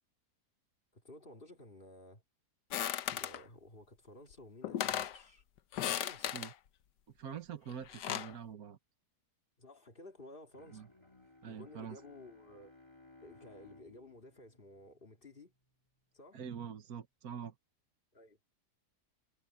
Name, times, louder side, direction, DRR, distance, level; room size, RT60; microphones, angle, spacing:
voice 1, 0.9-2.2 3.1-5.4 5.8-6.3 9.6-10.8 11.5-12.7 13.2-15.5 16.1-16.4 18.1-18.4, left 2 dB, 30° left, 2.6 m, -54 dB
sound 1, 2.7-3.4 4.3-4.4 4.6-5.2 5.7-6.5 7.7-8.3, left 11 dB, 85° left, 1.4 m, -36 dB
voice 2, 7.2-8.8 10.7-10.9 11.4-12.0 16.3-17.5, right 8 dB, 65° right, 1.6 m, -44 dB
Bowed string instrument, 10.5-15.6, left 2 dB, 15° left, 3.2 m, -60 dB
omnidirectional pair, 1.7 m